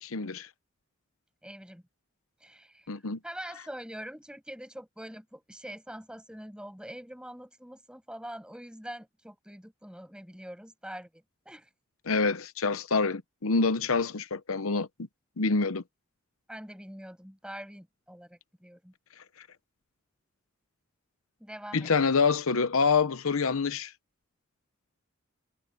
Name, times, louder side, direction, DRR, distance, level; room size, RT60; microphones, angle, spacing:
voice 1, 0.0-0.5 2.9-3.2 12.1-14.9 15.4-15.8 21.7-23.9, left 4 dB, 85° left, 0.8 m, -26 dB
voice 2, 1.4-1.8 2.4-11.7 16.5-18.9 21.4-21.9, equal, 5° right, 6.5 m, -44 dB
head